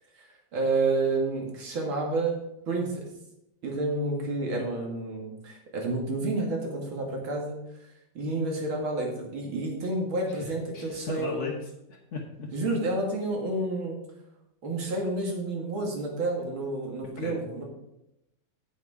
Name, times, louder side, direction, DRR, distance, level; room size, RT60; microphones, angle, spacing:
voice 1, 0.2-3.0 3.6-7.6 8.1-11.5 12.5-14.0 14.6-17.6, right 2 dB, 85° right, 0 dB, 2.8 m, -30 dB
voice 2, 10.3-11.5 11.9-12.5 17.2-17.4, left 4 dB, 45° left, -3 dB, 1.2 m, -37 dB
8.9 x 7.4 x 4.9 m, 0.86 s
omnidirectional pair, 2.2 m